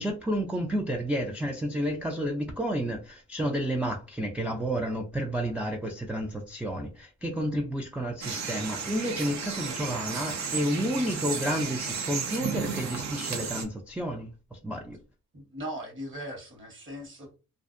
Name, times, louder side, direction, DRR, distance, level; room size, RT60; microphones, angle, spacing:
voice 1, 0.0-15.0, equal, 5° right, 0.3 m, -31 dB
sound 1, 8.2-13.6, right 6 dB, 60° right, 0.6 m, -33 dB
voice 2, 15.3-17.4, equal, 40° right, 1.2 m, -39 dB
2.4 x 2.1 x 2.5 m
cardioid pair, 80°, 31 cm